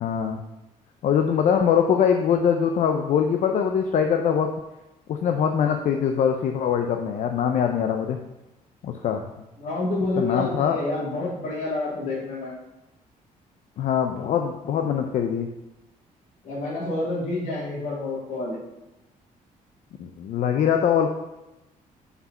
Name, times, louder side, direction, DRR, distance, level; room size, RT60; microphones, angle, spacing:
voice 1, 0.0-0.4 1.0-4.5 5.1-8.2 8.8-9.2 10.2-10.8 13.8-15.5 20.0-21.1, left 8 dB, 55° left, 5 dB, 0.6 m, -22 dB
voice 2, 9.6-12.5 16.4-18.6, left 2 dB, 75° left, -10 dB, 3.0 m, -28 dB
6.6 x 4.9 x 5.3 m, 0.98 s
cardioid pair, 135°, 15 cm